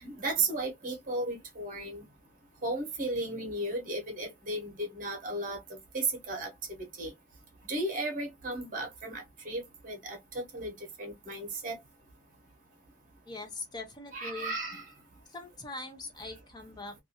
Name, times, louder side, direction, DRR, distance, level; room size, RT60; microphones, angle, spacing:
voice 1, 0.0-2.0 2.6-5.6 5.9-6.5 7.0-7.1 7.7-10.7 11.0-11.8 14.1-14.9, right 2 dB, 40° right, 0.9 m, -34 dB
voice 2, 13.3-14.5 15.3-16.9, left 3 dB, 20° left, 0.5 m, -42 dB
2.5 x 2.4 x 2.7 m
head